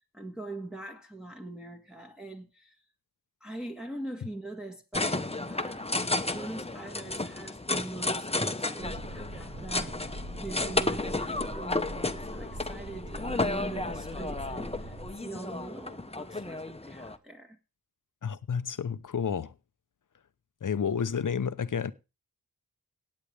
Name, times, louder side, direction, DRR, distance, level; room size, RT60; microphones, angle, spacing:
voice 1, 0.0-2.8 3.4-17.6, right 2 dB, ahead, 1.7 m, -42 dB
sound 1, 4.9-17.2, left 2 dB, 15° left, 1.1 m, -33 dB
sound 2, 8.8-15.1, right 1 dB, 55° right, 2.9 m, -42 dB
voice 2, 18.2-19.5 20.6-21.9, left 7 dB, 60° left, 0.8 m, -30 dB
17.5 x 8.7 x 3.4 m
cardioid pair, 40°, 36 cm